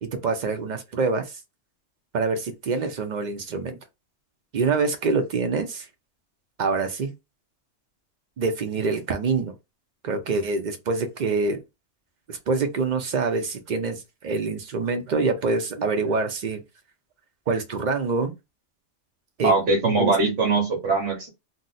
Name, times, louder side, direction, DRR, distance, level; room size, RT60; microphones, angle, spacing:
voice 1, 0.0-1.4 2.1-3.8 4.5-5.9 6.6-7.1 8.4-9.5 10.0-11.6 12.3-16.6 17.5-18.3 19.4-19.5 20.0-20.1, right 4 dB, 60° right, 0.4 m, -25 dB
voice 2, 19.4-21.3, right 3 dB, 75° right, 1.1 m, -21 dB
2.6 x 2.0 x 3.8 m
omnidirectional pair, 1.2 m